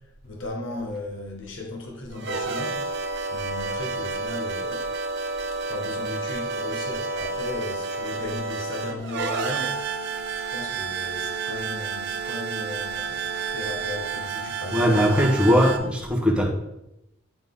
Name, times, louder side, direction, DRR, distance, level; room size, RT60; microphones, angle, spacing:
voice 1, 0.2-2.8 3.3-4.9 5.7-9.7 10.3-15.3, left 2 dB, 65° left, 1 dB, 1.2 m, -36 dB
sound 1, 2.1-15.8, right 4 dB, 60° right, 0.8 m, -30 dB
voice 2, 14.7-16.5, equal, 5° right, -2 dB, 1.2 m, -20 dB
9.7 x 4.0 x 3.7 m, 0.85 s
head